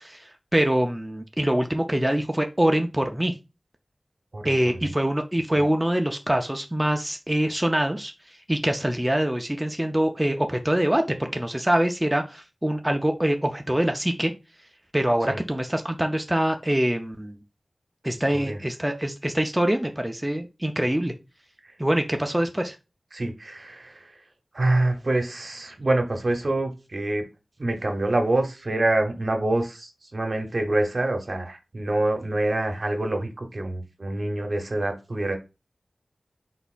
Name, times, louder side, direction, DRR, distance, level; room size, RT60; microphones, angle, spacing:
voice 1, 0.0-3.3 4.4-8.1 8.5-14.3 14.9-17.4 18.0-21.1 21.8-22.8, right 1 dB, 15° right, 5 dB, 0.5 m, -24 dB
voice 2, 23.1-24.1 24.5-27.2 27.6-35.4, right 2 dB, 55° right, 5 dB, 0.9 m, -26 dB
4.0 x 3.9 x 2.4 m, 0.28 s
cardioid pair, 45°, 0 cm